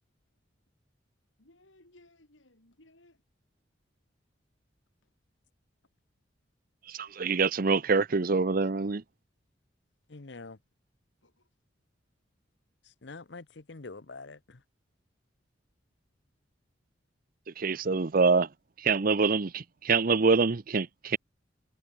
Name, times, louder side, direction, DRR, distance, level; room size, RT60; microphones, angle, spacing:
voice 1, 1.4-3.2 11.2-11.5, left 1 dB, 90° left, 5.4 m, -60 dB
voice 2, 6.9-9.0 17.6-18.5 18.8-21.2, right 4 dB, 50° right, 0.7 m, -25 dB
voice 3, 10.1-10.6 12.8-14.6, left 3 dB, 65° left, 1.0 m, -45 dB
head